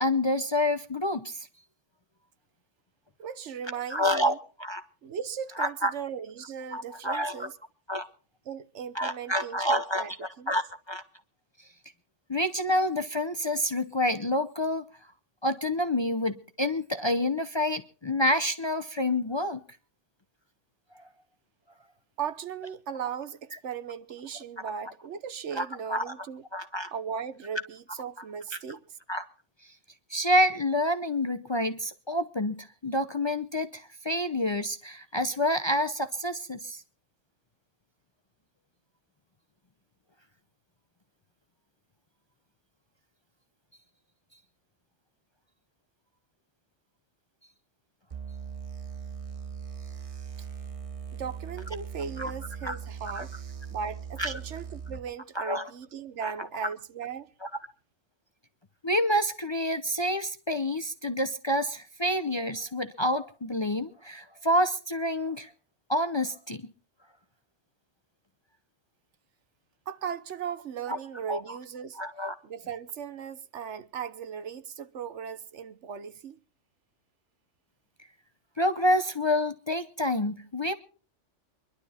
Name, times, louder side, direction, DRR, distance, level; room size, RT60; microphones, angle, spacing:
voice 1, 0.0-1.5 3.9-4.8 5.6-5.9 6.7-7.5 7.9-8.1 8.9-10.6 10.9-11.0 12.3-14.8 15.4-19.6 24.6-24.7 25.5-26.1 26.5-26.9 29.1-29.2 30.1-36.8 52.2-52.3 52.6-52.8 53.1-53.2 54.2-54.3 55.3-55.7 56.2-56.7 57.4-57.5 58.8-65.5 65.9-66.7 70.9-71.0 71.3-71.6 71.9-72.3 78.6-80.7, left 1 dB, 30° left, 0.6 m, -28 dB
voice 2, 3.2-4.4 5.0-7.5 8.5-10.5 22.2-26.4 26.9-29.0 50.4-50.5 51.1-53.3 53.7-57.3 69.9-72.0 72.4-76.4, right 7 dB, 70° right, 1.2 m, -37 dB
sound 1, 48.1-55.0, right 7 dB, 30° right, 0.9 m, -40 dB
24.0 x 11.5 x 4.2 m
omnidirectional pair, 1.3 m